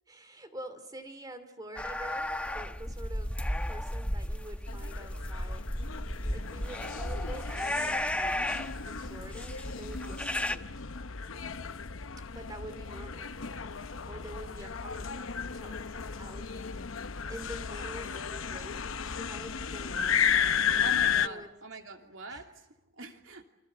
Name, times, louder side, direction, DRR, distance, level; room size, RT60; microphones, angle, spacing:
voice 1, 0.1-5.7 6.3-8.5 8.8-10.7 12.2-16.8 17.3-21.5 22.3-22.4, right 1 dB, 20° right, 9 dB, 2.6 m, -47 dB
sound 1, 1.8-10.6, left 1 dB, 5° left, 1.0 m, -34 dB
sound 2, 4.7-21.3, left 7 dB, 90° left, 1.0 m, -34 dB
voice 2, 20.8-23.4, right 3 dB, 75° right, 4 dB, 2.9 m, -43 dB
29.5 x 25.5 x 8.0 m, 0.90 s
head